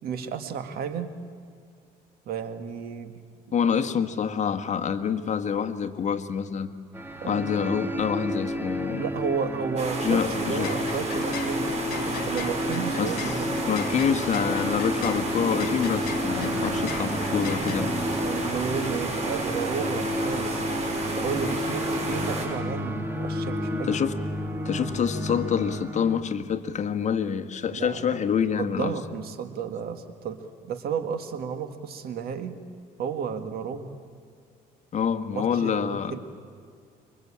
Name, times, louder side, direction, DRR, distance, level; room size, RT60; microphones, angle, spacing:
voice 1, 0.0-1.1 2.3-3.1 3.5-3.6 7.2-7.5 8.9-11.7 12.3-13.7 17.6-17.8 18.2-20.6 21.2-24.0 27.7-28.2 28.6-32.6 33.0-33.9 35.3-36.2, right 6 dB, 65° right, 8 dB, 2.1 m, -32 dB
voice 2, 3.5-6.7 7.3-9.0 10.0-10.7 13.0-13.1 13.7-17.9 23.9-24.1 24.6-29.0 34.9-36.1, left 7 dB, 45° left, 8 dB, 1.6 m, -26 dB
sound 1, 6.9-26.2, equal, 10° right, 1.9 m, -31 dB
sound 2, 9.8-22.5, right 2 dB, 40° right, 6.0 m, -32 dB
sound 3, 10.4-17.8, left 10 dB, 65° left, 1.8 m, -39 dB
26.5 x 24.0 x 8.8 m, 2.3 s
cardioid pair, 110°, 17 cm